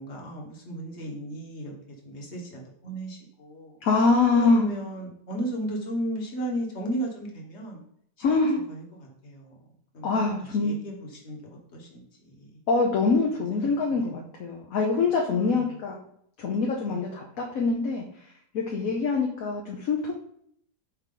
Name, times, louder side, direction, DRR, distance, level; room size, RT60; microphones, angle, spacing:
voice 1, 0.0-1.7 2.0-3.8 4.3-7.8 8.2-9.5 9.9-10.1 10.6-12.6 13.4-14.1 15.4-15.7 16.8-17.1 18.8-18.9, equal, 40° left, -1 dB, 1.6 m, -35 dB
voice 2, 3.8-4.7 8.2-8.6 10.0-10.7 12.7-16.0 16.4-18.0 18.5-20.1, left 4 dB, 60° left, 0 dB, 1.1 m, -24 dB
6.6 x 4.7 x 3.8 m, 0.69 s
omnidirectional pair, 1.8 m